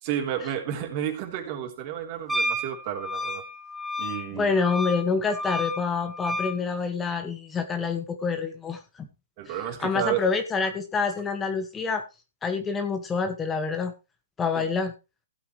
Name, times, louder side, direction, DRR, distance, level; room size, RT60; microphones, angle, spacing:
voice 1, 0.0-3.4 4.0-4.5 9.4-10.3 14.5-14.7, right 10 dB, 40° right, 3.5 m, -31 dB
Wind instrument woodwind instrument, 2.3-6.6, left 1 dB, 5° right, 1.5 m, -31 dB
voice 2, 4.3-9.1 9.8-12.0 12.4-13.9 14.4-14.9, left 5 dB, 15° left, 1.2 m, -27 dB
16.0 x 8.5 x 3.2 m
hypercardioid pair, 140°, 0 cm